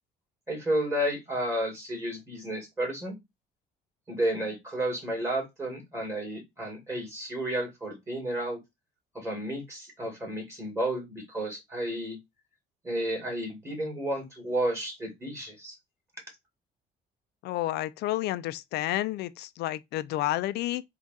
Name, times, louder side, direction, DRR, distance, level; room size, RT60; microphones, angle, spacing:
voice 1, 0.5-3.2 4.1-8.6 9.1-12.2 12.8-15.8, right 1 dB, 15° right, 2.0 m, -32 dB
voice 2, 17.4-20.8, left 15 dB, 75° left, 0.5 m, -30 dB
3.7 x 2.5 x 4.0 m
cardioid pair, 110°, 17 cm